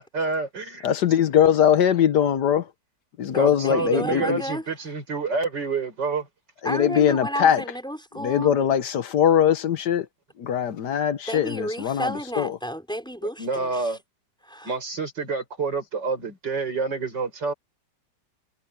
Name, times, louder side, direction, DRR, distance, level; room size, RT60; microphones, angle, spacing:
voice 1, 0.0-0.9 3.4-6.3 13.2-14.0 14.6-17.5, right 4 dB, 85° right, 6.4 m, -28 dB
voice 2, 0.8-2.7 3.2-4.4 6.6-7.6 8.1-10.1 10.4-12.6, left 9 dB, 75° left, 1.5 m, -21 dB
voice 3, 3.3-4.6 6.6-8.5 11.3-14.0 14.5-14.7, equal, ahead, 5.6 m, -32 dB
omnidirectional pair, 1.9 m